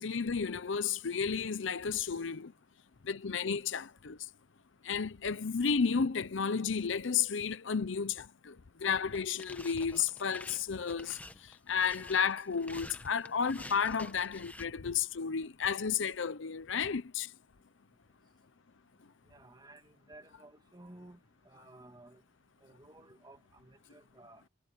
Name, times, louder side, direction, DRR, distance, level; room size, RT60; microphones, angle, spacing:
voice 1, 0.0-2.5 3.0-4.2 4.8-8.6 8.8-11.2 11.7-17.3, left 6 dB, 70° left, 0.7 m, -32 dB
sound 1, 9.1-14.6, left 1 dB, 10° left, 1.1 m, -49 dB
voice 2, 19.3-21.2 21.4-22.2 22.6-24.5, right 2 dB, 20° right, 2.0 m, -55 dB
head